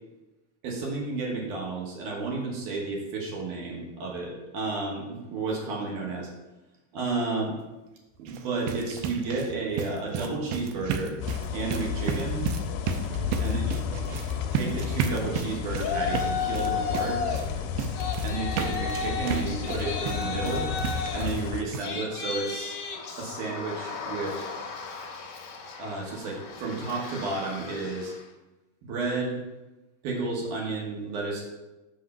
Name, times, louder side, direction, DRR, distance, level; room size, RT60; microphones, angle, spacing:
voice 1, 0.6-6.3 6.9-7.6 8.2-11.1 11.5-12.5 13.4-13.8 14.5-17.2 18.2-20.7 21.1-22.7 23.2-24.4 25.8-28.1 28.8-29.4 30.0-31.5, right 3 dB, 65° right, -2 dB, 2.4 m, -32 dB
sound 1, 8.2-21.5 21.7-21.9 22.3-22.4 22.7-22.8, right 7 dB, 80° right, 2.1 m, -34 dB
sound 2, 11.2-21.6, left 7 dB, 85° left, 2.5 m, -32 dB
Yell, 15.8-17.4 17.8-28.2, left 6 dB, 65° left, 1.4 m, -34 dB
6.4 x 5.8 x 5.4 m, 1.1 s
omnidirectional pair, 4.5 m